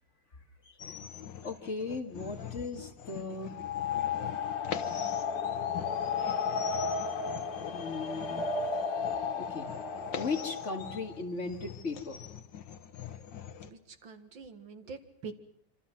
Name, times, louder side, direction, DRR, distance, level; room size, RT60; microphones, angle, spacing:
sound 1, 0.8-13.7, left 8 dB, 60° left, 1.9 m, -44 dB
voice 1, 1.4-3.5 7.7-8.5 9.3-9.7 10.2-12.3, left 4 dB, 35° left, 4 dB, 2.2 m, -37 dB
sound 2, 3.5-11.1, left 5 dB, 90° left, 2.7 m, -33 dB
voice 2, 13.6-15.3, right 5 dB, 65° right, 7 dB, 2.5 m, -45 dB
26.5 x 26.5 x 5.9 m, 0.68 s
omnidirectional pair, 2.4 m